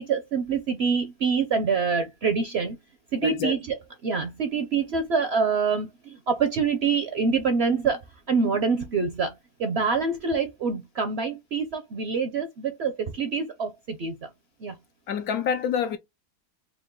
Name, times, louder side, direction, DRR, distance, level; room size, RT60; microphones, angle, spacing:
voice 1, 0.0-2.8 3.1-3.8 4.0-8.0 8.3-9.3 9.6-14.3 14.6-14.8, right 5 dB, 60° right, 0.7 m, -26 dB
voice 2, 3.2-3.5 15.1-16.0, left 7 dB, 75° left, 1.1 m, -27 dB
4.4 x 2.3 x 3.7 m
omnidirectional pair, 1.7 m